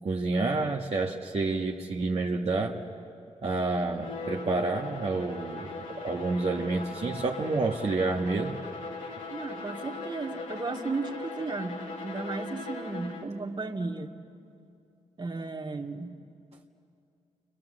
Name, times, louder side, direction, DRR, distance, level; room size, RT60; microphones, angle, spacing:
voice 1, 0.0-2.8 3.4-8.6, right 3 dB, 50° right, -2 dB, 1.6 m, -29 dB
Bowed string instrument, 3.9-13.4, left 3 dB, 85° left, 3.2 m, -40 dB
voice 2, 9.3-14.1 15.2-16.2, right 3 dB, 35° right, 2 dB, 2.1 m, -34 dB
29.0 x 24.0 x 7.8 m, 2.5 s
cardioid pair, 60°, 13 cm